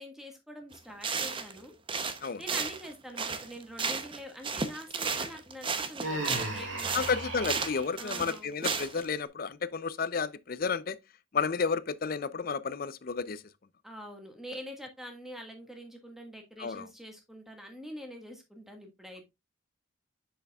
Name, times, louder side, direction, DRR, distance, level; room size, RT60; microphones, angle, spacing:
voice 1, 0.0-1.7 2.4-7.0 8.0-8.5 13.8-19.2, equal, ahead, 1.6 m, -45 dB
sound 1, 0.7-0.8 1.0-1.6 1.9-4.2 4.4-9.1, right 5 dB, 25° right, 0.7 m, -33 dB
Human voice, 6.0-7.9, right 1 dB, 70° right, 2.2 m, -35 dB
voice 2, 6.9-11.0 11.3-13.4 16.6-16.9, left 5 dB, 45° left, 0.5 m, -32 dB
7.9 x 6.7 x 2.3 m
head